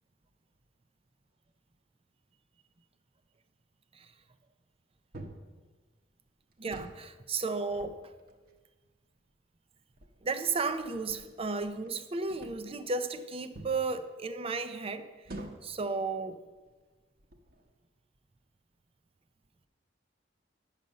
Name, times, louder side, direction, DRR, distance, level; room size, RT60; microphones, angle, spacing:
sound 1, 5.1-5.5 6.5-7.1 7.5-8.6 9.3-9.4 9.9-11.9 12.3-12.8 13.5-13.8 15.2-15.8 16.5-16.7 17.2-17.7, right 1 dB, 50° right, 1.0 m, -48 dB
voice 1, 6.6-8.0 10.2-16.4, right 4 dB, 30° right, 0.5 m, -34 dB
8.9 x 6.6 x 6.4 m
head